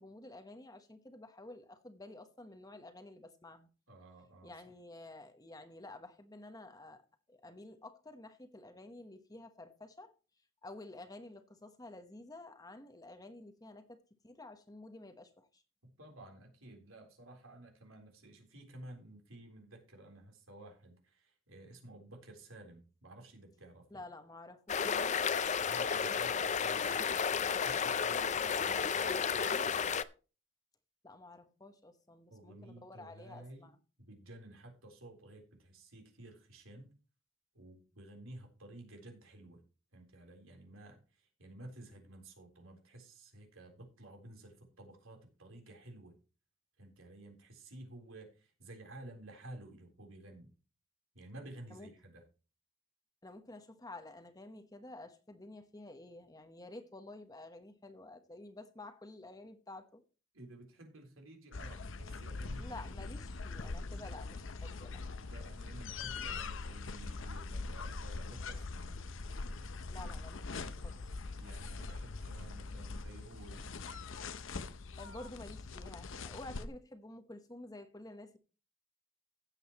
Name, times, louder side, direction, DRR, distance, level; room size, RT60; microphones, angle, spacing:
voice 1, 0.0-3.7 4.4-10.1 10.6-15.6 23.9-25.2 31.0-33.8 51.7-51.9 53.2-60.0 62.6-65.0 69.9-71.2 75.0-78.4, left 2 dB, 20° left, 1.1 m, -51 dB
voice 2, 3.9-4.5 15.8-24.0 25.6-29.9 32.3-33.7 34.0-36.9 37.5-39.6 39.9-46.1 46.8-50.5 51.1-52.2 60.3-62.9 65.2-69.0 71.4-73.6, right 1 dB, 90° right, 3.7 m, -53 dB
sound 1, 24.7-30.0, left 6 dB, 35° left, 0.5 m, -32 dB
sound 2, 61.5-76.7, left 3 dB, 70° left, 0.8 m, -42 dB
16.0 x 7.9 x 3.0 m
head